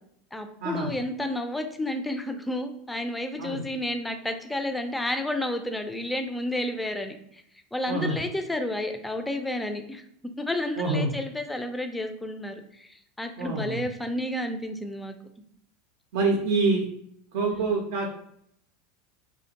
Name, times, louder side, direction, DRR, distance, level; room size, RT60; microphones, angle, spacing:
voice 1, 0.3-7.4 7.7-10.0 10.4-15.1 17.5-17.7, left 1 dB, 10° left, 6 dB, 0.4 m, -31 dB
voice 2, 10.8-11.1 13.4-13.8 16.1-16.9 17.3-18.1, right 3 dB, 75° right, 0 dB, 0.4 m, -26 dB
2.4 x 2.2 x 2.8 m, 0.71 s
hypercardioid pair, 100°, 0 cm